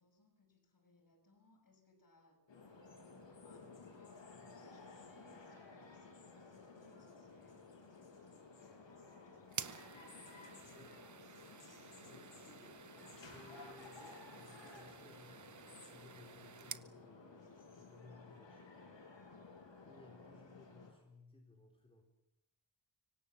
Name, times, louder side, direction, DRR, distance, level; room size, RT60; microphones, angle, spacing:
voice 1, 0.0-2.5 3.3-9.8 10.4-11.8, left 2 dB, 50° left, 6 dB, 6.3 m, -69 dB
sound 1, 2.5-20.9, left 4 dB, 90° left, 7.8 m, -56 dB
sound 2, 9.5-16.9, right 6 dB, 40° right, 0.9 m, -51 dB
voice 2, 10.6-11.1 12.0-18.8 19.8-22.0, left 2 dB, 15° left, 1 dB, 4.2 m, -62 dB
25.0 x 24.5 x 7.0 m, 0.93 s
wide cardioid pair, 145°, 43 cm